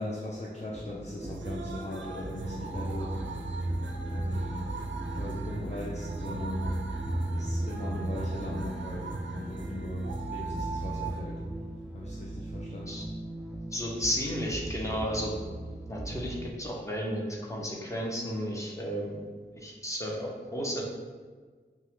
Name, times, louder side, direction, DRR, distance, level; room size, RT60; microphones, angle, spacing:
voice 1, 0.0-3.2 4.0-6.8 7.3-11.4 11.9-13.0, left 1 dB, 40° left, -4 dB, 0.6 m, -39 dB
sound 1, 0.7-16.5, right 1 dB, 5° right, 0.3 m, -36 dB
sound 2, 1.2-11.2, right 4 dB, 90° right, 0.4 m, -40 dB
voice 2, 13.7-15.3 15.9-17.2 17.5-19.3 19.6-20.8, equal, 15° left, -3 dB, 1.0 m, -33 dB
5.4 x 2.4 x 3.7 m, 1.5 s
wide cardioid pair, 55°, 19 cm